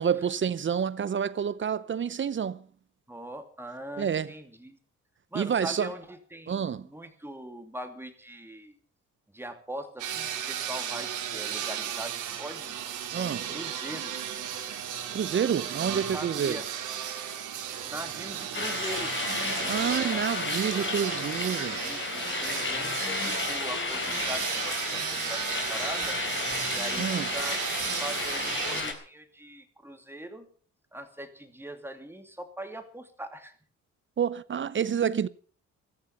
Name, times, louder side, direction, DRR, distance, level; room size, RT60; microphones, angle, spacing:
voice 1, 0.0-2.6 4.0-4.3 5.3-5.9 6.5-6.9 13.1-13.5 15.1-16.6 19.7-21.8 27.0-27.3 34.2-35.3, right 8 dB, 40° right, 0.7 m, -28 dB
voice 2, 3.1-4.8 5.3-8.8 9.3-12.7 13.1-14.1 15.8-16.7 17.8-19.1 19.6-20.3 21.8-26.2 26.7-27.7 28.0-30.5 30.9-33.5, right 1 dB, 10° right, 2.8 m, -41 dB
sound 1, 10.0-28.8, right 9 dB, 85° right, 3.3 m, -34 dB
sound 2, 18.5-28.9, left 4 dB, 40° left, 4.2 m, -32 dB
15.5 x 14.5 x 5.9 m
cardioid pair, 90°, 30 cm